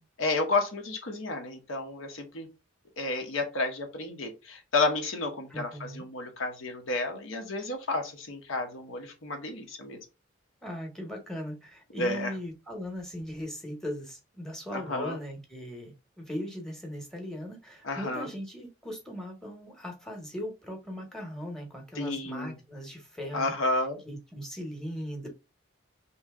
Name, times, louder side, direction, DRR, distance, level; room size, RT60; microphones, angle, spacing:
voice 1, 0.2-2.5 3.0-10.0 12.0-12.3 14.7-15.2 17.8-18.3 22.0-22.5 23.3-24.0, left 2 dB, 85° left, 0.9 m, -31 dB
voice 2, 5.5-6.0 10.6-25.3, equal, 5° left, 0.9 m, -39 dB
3.0 x 2.7 x 3.5 m
head